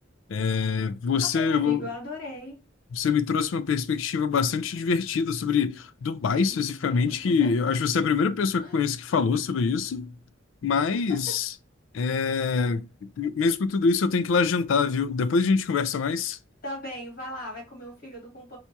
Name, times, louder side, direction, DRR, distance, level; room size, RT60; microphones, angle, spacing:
voice 1, 0.3-1.8 2.9-10.1 10.6-11.5 11.9-12.9 13.2-16.4, left 5 dB, 80° left, 0.4 m, -25 dB
voice 2, 1.3-2.6 6.5-6.6 6.9-7.5 8.6-8.8 10.7-11.3 16.6-18.6, left 1 dB, 50° left, 2.0 m, -38 dB
4.4 x 2.3 x 2.6 m
head